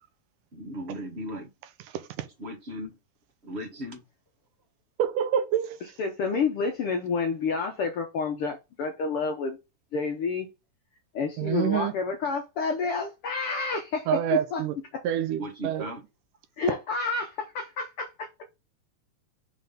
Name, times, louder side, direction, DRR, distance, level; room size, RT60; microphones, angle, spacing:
voice 1, 0.5-1.5 2.4-2.9 3.4-4.0 15.4-16.0, equal, 35° right, 1.0 m, -36 dB
voice 2, 1.9-2.3 5.0-5.8 11.4-11.9 14.1-14.7 15.0-15.9, right 10 dB, 80° right, 2.4 m, -27 dB
voice 3, 6.0-9.6 9.9-10.5 11.1-14.6 16.6-18.3, left 4 dB, 65° left, 1.4 m, -29 dB
6.2 x 3.7 x 5.3 m
omnidirectional pair, 3.6 m